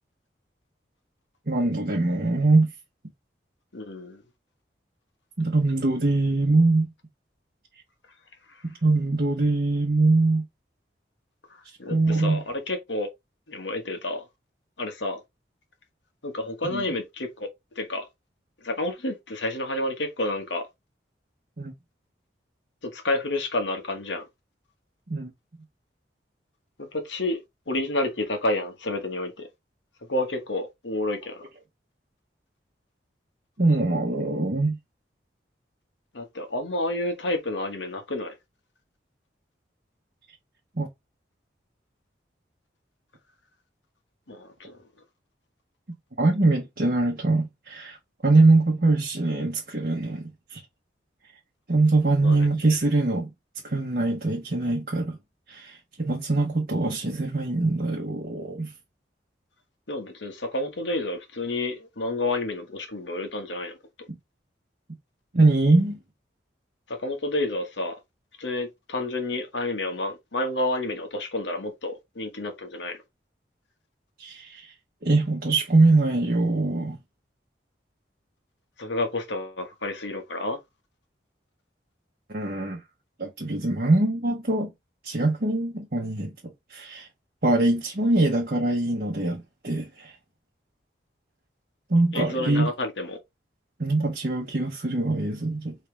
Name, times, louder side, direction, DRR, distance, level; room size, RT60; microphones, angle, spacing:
voice 1, 1.5-2.7 5.4-6.9 8.6-10.4 11.6-12.4 16.7-16.8 21.6-21.7 25.1-25.3 33.6-34.8 40.8-40.9 46.2-48.0 48.2-50.6 51.7-53.3 53.6-55.2 55.5-58.7 65.3-66.0 74.2-74.7 75.0-77.0 82.3-82.8 83.2-84.7 85.0-86.3 86.7-87.1 87.4-90.2 91.9-92.7 93.8-95.7, right 2 dB, 50° right, 0.9 m, -23 dB
voice 2, 3.7-4.2 11.5-13.1 13.5-14.3 14.8-15.2 16.2-17.5 17.7-18.0 18.6-20.7 22.8-24.2 26.8-27.4 27.7-29.5 30.1-31.4 36.1-38.4 44.3-44.8 52.2-52.5 59.9-63.7 66.9-68.0 68.4-73.0 78.8-80.6 92.1-93.2, left 2 dB, 85° left, 1.3 m, -30 dB
4.8 x 3.3 x 3.3 m
head